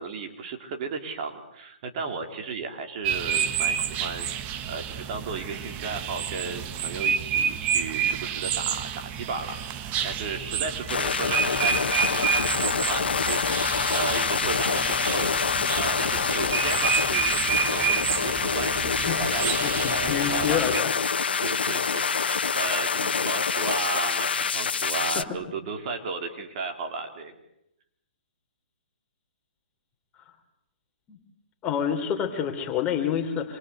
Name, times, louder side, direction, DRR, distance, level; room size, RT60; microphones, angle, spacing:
voice 1, 0.0-4.3 4.7-20.7 21.4-27.3 31.8-32.1, right 4 dB, 45° right, 4 dB, 4.6 m, -35 dB
sound 1, 3.0-20.8, right 8 dB, 25° right, 1.5 m, -29 dB
sound 2, 10.9-25.2, left 6 dB, 80° left, 1.6 m, -26 dB
voice 2, 19.6-20.9 25.1-25.2 31.1-31.2 31.6-33.6, left 8 dB, 20° left, 4 dB, 4.0 m, -28 dB
27.5 x 24.0 x 8.3 m, 0.81 s
hypercardioid pair, 140°, 5 cm